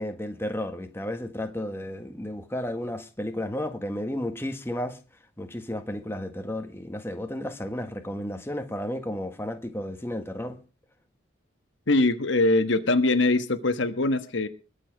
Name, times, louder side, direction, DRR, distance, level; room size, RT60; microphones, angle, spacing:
voice 1, 0.0-5.0 5.4-10.6, left 1 dB, 10° left, 1.6 m, -33 dB
voice 2, 11.9-14.5, left 2 dB, 65° left, 1.4 m, -22 dB
22.0 x 7.4 x 5.9 m
head